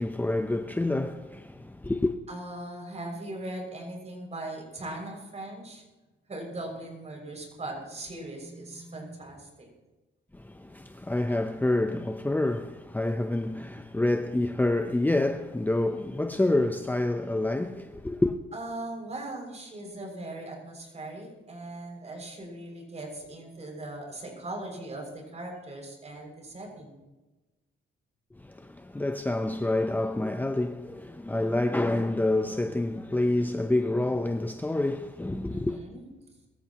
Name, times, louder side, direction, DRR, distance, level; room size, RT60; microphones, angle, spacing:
voice 1, 0.0-2.1 10.3-18.4 28.4-35.8, left 2 dB, 10° left, 0.8 m, -28 dB
voice 2, 2.3-5.8 6.3-9.7 18.5-27.0 35.5-36.1, right 2 dB, 35° right, 6.6 m, -39 dB
22.5 x 14.5 x 3.1 m
cardioid pair, 90°, 20 cm